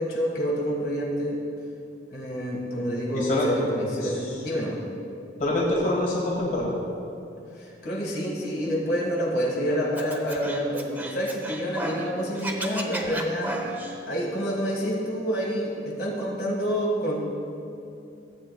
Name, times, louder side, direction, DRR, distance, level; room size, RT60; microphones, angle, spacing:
voice 1, 0.0-1.4 2.1-4.8 7.6-13.6 14.1-17.2, equal, 65° left, -3 dB, 1.7 m, -28 dB
voice 2, 3.1-3.5 4.0-4.4 5.4-6.7, left 1 dB, 45° left, -5 dB, 1.5 m, -25 dB
Scratching (performance technique), 10.0-12.1 12.4-14.0, right 1 dB, 10° right, 0.6 m, -33 dB
15.5 x 7.9 x 2.2 m, 2.6 s
head